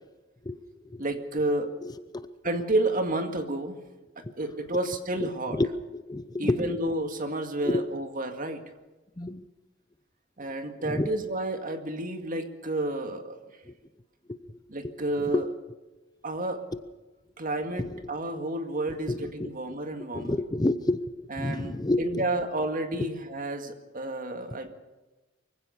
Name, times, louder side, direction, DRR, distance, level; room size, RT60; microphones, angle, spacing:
voice 1, 1.0-1.7 2.4-3.8 4.2-5.6 6.4-8.6 10.4-13.4 14.7-15.5 16.2-16.7 17.4-20.4 21.3-24.7, right 2 dB, 45° right, 6 dB, 2.1 m, -30 dB
voice 2, 1.8-2.3 2.5-2.6 4.2-4.3 5.2-5.7 5.9-6.8 7.6-7.8 9.2-9.4 10.8-11.1 13.7-13.8 14.3-15.5 16.7-16.8 17.8-18.1 19.1-19.8 20.1-22.3 23.0-23.1, left 2 dB, 20° left, 12 dB, 0.7 m, -30 dB
24.0 x 16.0 x 7.1 m, 1.1 s
head